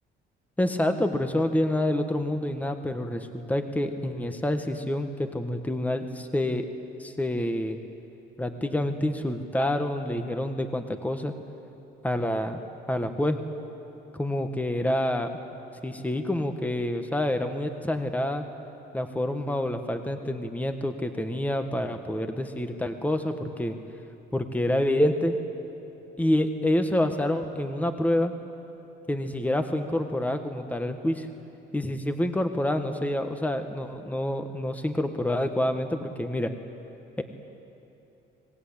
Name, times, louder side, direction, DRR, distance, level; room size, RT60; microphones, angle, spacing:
voice 1, 0.6-6.6 7.0-7.8 8.4-11.3 12.0-12.6 12.9-13.4 14.1-15.3 15.8-18.5 18.9-23.7 24.3-25.4 26.2-28.3 29.1-31.3 31.7-36.5, left 1 dB, 10° left, 6 dB, 1.5 m, -27 dB
25.5 x 19.0 x 8.9 m, 3.0 s
cardioid pair, 90°, 20 cm